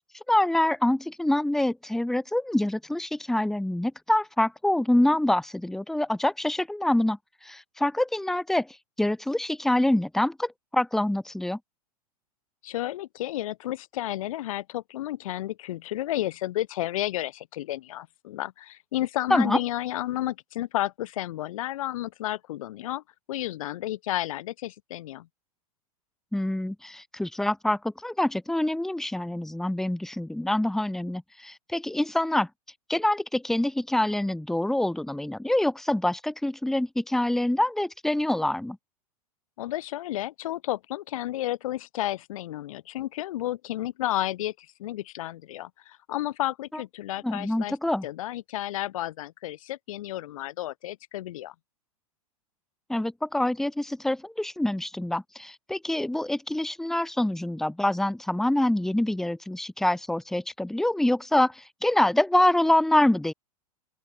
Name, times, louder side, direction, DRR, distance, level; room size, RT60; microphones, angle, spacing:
voice 1, 0.3-11.6 19.3-19.6 26.3-32.5 32.9-38.8 46.7-46.8 47.2-48.1 52.9-63.3, left 1 dB, ahead, 0.6 m, -26 dB
voice 2, 12.6-23.0 23.3-25.3 39.6-47.8 48.0-51.5, left 14 dB, 60° left, 1.7 m, -32 dB
open air
figure-of-eight pair, 95°, 20 cm